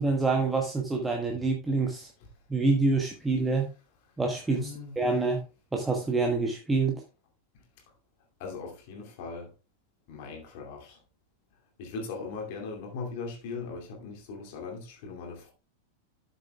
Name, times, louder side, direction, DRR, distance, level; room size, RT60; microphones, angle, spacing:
voice 1, 0.0-2.1 2.5-3.7 4.2-4.7 5.0-5.4 5.7-6.9, right 3 dB, 10° right, 1.2 m, -26 dB
voice 2, 4.6-4.9 8.4-9.5 10.1-11.0 11.8-15.5, left 4 dB, 50° left, 2.5 m, -39 dB
13.0 x 6.8 x 2.3 m
figure-of-eight pair, 90°, 0 cm